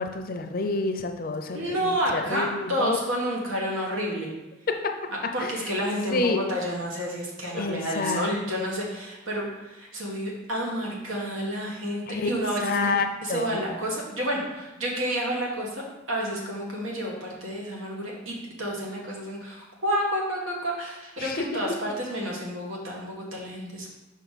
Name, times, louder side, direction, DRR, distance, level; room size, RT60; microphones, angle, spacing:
voice 1, 0.0-3.0 4.7-4.9 5.4-5.7 6.1-6.4 7.5-8.3 12.1-12.3 12.6-13.6 21.2-21.5, left 3 dB, 45° left, 5 dB, 0.5 m, -28 dB
voice 2, 1.5-4.3 5.3-12.9 13.2-15.8 16.1-23.9, equal, 90° right, -2 dB, 1.6 m, -30 dB
5.8 x 4.6 x 4.1 m, 1.0 s
head